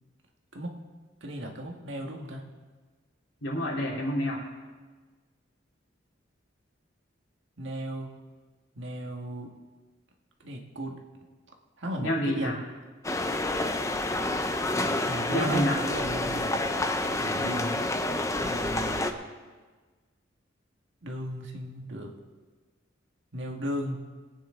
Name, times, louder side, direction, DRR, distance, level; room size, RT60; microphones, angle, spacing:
voice 1, 1.2-2.4 7.6-8.1 8.8-9.5 10.4-10.9 11.8-12.5 15.0-16.6 17.2-17.5 18.4-19.2 21.0-22.1 23.3-24.0, equal, 70° right, 2 dB, 1.7 m, -35 dB
voice 2, 3.4-4.4 12.0-12.6 15.3-15.8 17.4-17.8, equal, 85° left, -4 dB, 3.4 m, -29 dB
sound 1, 13.0-19.1, left 2 dB, 15° left, 0.6 m, -28 dB
21.5 x 9.1 x 3.8 m, 1.4 s
head